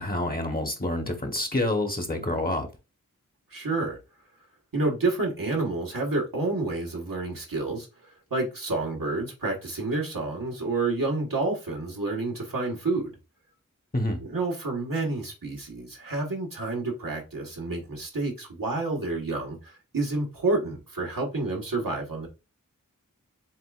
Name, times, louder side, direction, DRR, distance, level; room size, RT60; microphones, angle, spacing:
voice 1, 0.0-2.7 13.9-14.2, left 1 dB, 30° left, 1.1 m, -27 dB
voice 2, 3.5-4.0 4.7-7.9 8.3-13.1 14.2-22.3, right 3 dB, 90° right, 1.5 m, -29 dB
7.4 x 2.5 x 2.4 m
wide cardioid pair, 50°, 33 cm